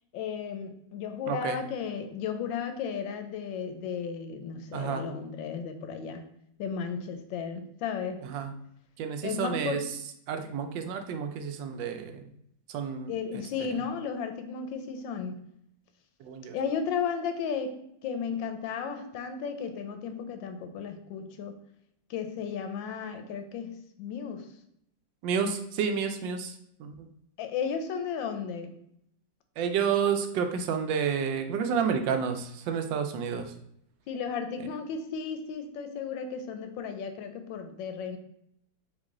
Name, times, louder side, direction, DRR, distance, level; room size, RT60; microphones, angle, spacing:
voice 1, 0.1-6.2 6.6-8.2 9.2-9.9 13.1-15.4 16.5-17.8 18.0-21.6 22.1-24.5 27.4-28.8 34.1-38.2, left 6 dB, 85° left, 7 dB, 1.3 m, -34 dB
voice 2, 1.3-1.6 4.7-5.0 8.2-8.5 9.0-9.8 10.3-12.2 12.7-13.1 16.2-16.6 25.2-26.5 26.8-27.1 29.6-33.5, right 6 dB, 80° right, 6 dB, 1.3 m, -30 dB
3.8 x 3.1 x 3.6 m, 0.72 s
omnidirectional pair, 2.0 m